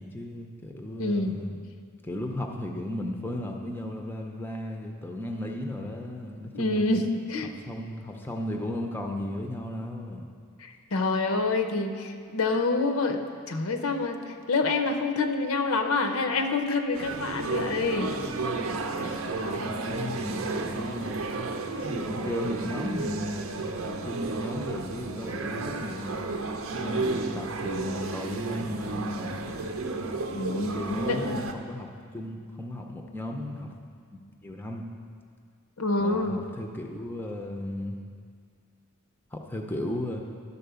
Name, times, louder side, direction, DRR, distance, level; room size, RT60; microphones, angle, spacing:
voice 1, 0.0-1.6 2.0-6.9 7.4-10.2 19.3-21.2 21.8-26.2 26.8-29.6 30.5-33.7 34.1-34.9 36.0-38.0 39.3-40.2, left 1 dB, 10° left, 2 dB, 0.5 m, -35 dB
voice 2, 1.0-1.4 6.5-7.0 7.3-7.5 10.6-18.1 30.3-31.4 35.8-36.4, left 3 dB, 70° left, 6 dB, 0.7 m, -27 dB
sound 1, 16.9-31.5, right 3 dB, 65° right, 0.6 m, -32 dB
11.5 x 4.1 x 6.8 m, 2.1 s
head